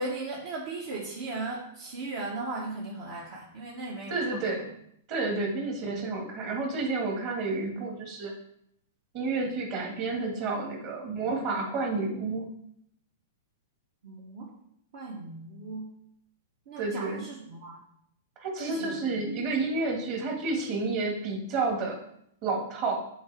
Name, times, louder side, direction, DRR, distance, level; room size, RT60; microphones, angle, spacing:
voice 1, 0.0-4.4 14.0-14.6 14.9-16.0 16.7-17.8 18.6-19.2, right 2 dB, 60° right, -3 dB, 1.1 m, -37 dB
voice 2, 4.1-4.7 5.1-8.3 9.1-12.5 16.8-17.2 18.4-22.0 22.4-23.0, right 3 dB, 45° right, 1 dB, 1.8 m, -30 dB
7.8 x 3.8 x 3.4 m, 0.73 s
hypercardioid pair, 125°, 0 cm